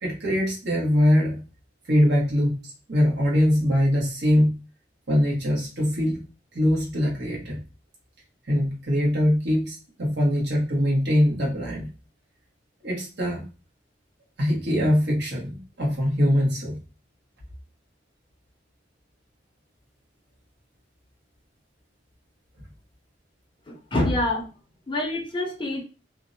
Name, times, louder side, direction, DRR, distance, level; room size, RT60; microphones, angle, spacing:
voice 1, 0.0-1.4 1.9-4.6 5.1-6.2 6.5-7.6 8.5-11.9 12.8-13.5 14.4-16.8, equal, 65° right, -3 dB, 0.9 m, -22 dB
voice 2, 23.7-24.5 24.9-25.8, left 1 dB, 25° left, 0 dB, 0.5 m, -26 dB
2.4 x 2.0 x 2.5 m, 0.33 s
head